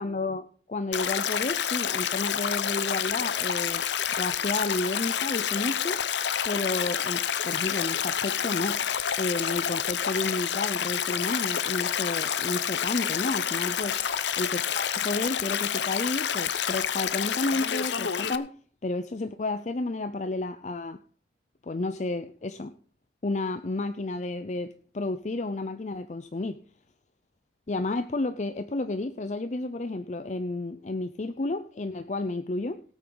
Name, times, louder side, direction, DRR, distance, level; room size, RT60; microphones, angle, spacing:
voice 1, 0.0-3.8 4.2-6.0 6.4-8.8 9.2-14.0 14.4-18.5 18.8-21.0 21.6-22.7 23.2-26.6 27.7-32.8, left 2 dB, 40° left, 11 dB, 0.5 m, -31 dB
Stream, 0.9-18.4, left 8 dB, 80° left, 0.7 m, -28 dB
18.0 x 8.7 x 3.9 m, 0.42 s
head